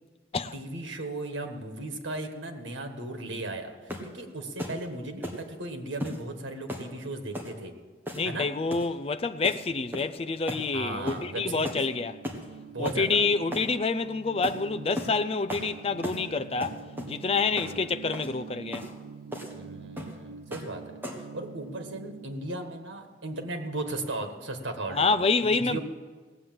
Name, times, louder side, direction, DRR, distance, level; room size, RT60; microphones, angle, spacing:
voice 1, 0.5-7.7 8.2-8.5 10.7-11.8 12.7-13.1 17.5-17.8 19.5-20.8 21.3-25.2 25.4-25.8, right 2 dB, 90° right, 1.6 m, -36 dB
sound 1, 3.9-4.1 4.6-4.8 5.2-5.4 6.0-6.2 6.7-6.9 7.3-7.5 8.1-8.4 8.7-8.9 9.4-9.6 9.9-10.2 10.5-10.7 11.1-11.3 11.6-11.8 12.2-12.5 12.8-13.0 13.5-13.7 14.4-14.6 15.0-15.2 15.5-15.7 16.0-16.2 16.6-17.2 17.6-17.8 18.1-18.3 18.7-18.9 19.3-19.5 20.0-20.2 20.5-20.7 21.0-21.3, equal, 10° right, 1.6 m, -36 dB
voice 2, 8.1-12.2 12.8-16.8 17.1-18.9 24.9-25.8, left 4 dB, 30° left, 0.4 m, -27 dB
sound 2, 10.7-22.3, right 6 dB, 75° right, 0.5 m, -46 dB
17.5 x 8.1 x 7.8 m
head